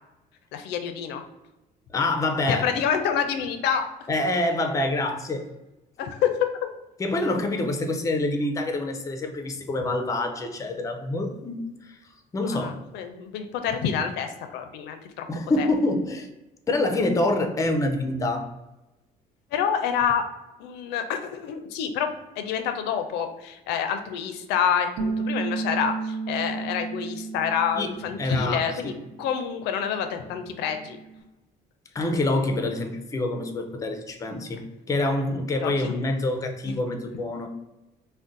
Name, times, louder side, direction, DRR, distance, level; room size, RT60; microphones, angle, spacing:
voice 1, 0.5-1.2 2.5-3.9 6.0-6.5 12.5-15.3 15.6-15.7 19.5-20.2 20.6-28.9 29.2-31.0 35.6-36.0 36.7-36.8, left 8 dB, 85° left, 7 dB, 0.4 m, -27 dB
voice 2, 1.9-2.7 4.1-5.5 7.0-12.0 12.3-12.7 15.3-16.3 16.7-18.6 27.8-27.9 28.2-28.9 31.9-37.5, left 2 dB, 20° left, 5 dB, 0.4 m, -26 dB
Bass guitar, 25.0-31.2, right 4 dB, 65° right, 0.4 m, -34 dB
2.5 x 2.1 x 3.8 m, 0.99 s
cardioid pair, 110°, 17 cm